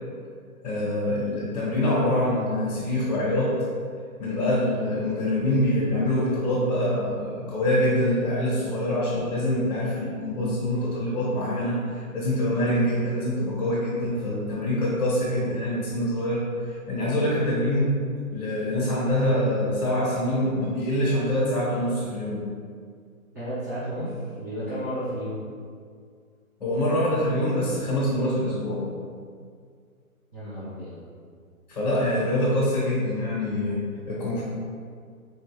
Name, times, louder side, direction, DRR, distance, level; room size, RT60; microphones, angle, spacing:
voice 1, 0.6-3.5 4.2-17.9 18.3-22.4 26.6-28.8 31.7-34.4, left 1 dB, 30° left, -9 dB, 1.4 m, -25 dB
voice 2, 23.3-25.4 30.3-31.0, equal, 15° right, -14 dB, 0.5 m, -32 dB
4.2 x 3.4 x 3.0 m, 2.1 s
figure-of-eight pair, 135°, 44 cm